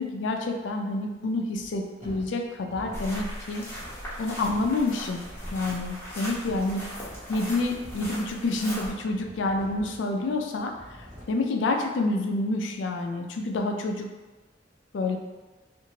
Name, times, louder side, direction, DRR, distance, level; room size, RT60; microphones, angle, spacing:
voice 1, 0.0-3.6 4.2-5.2 5.5-6.8 7.3-10.7 11.3-14.1 14.9-15.2, left 2 dB, 85° left, 3 dB, 0.4 m, -28 dB
sound 1, 1.5-11.4, equal, 40° right, 0.7 m, -48 dB
sound 2, 2.9-8.9, equal, 15° left, 0.8 m, -38 dB
2.7 x 2.5 x 2.8 m, 1.2 s
head